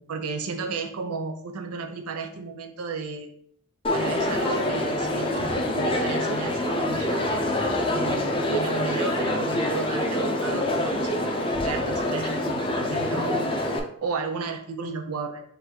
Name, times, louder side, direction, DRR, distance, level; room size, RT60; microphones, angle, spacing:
voice 1, 0.0-3.3 3.9-7.3 7.9-11.2 11.6-13.5 14.0-15.4, right 4 dB, 85° right, 3 dB, 0.6 m, -33 dB
Crowd, 3.8-13.8, left 1 dB, 25° left, 0.5 m, -26 dB
4.0 x 2.5 x 4.4 m, 0.65 s
head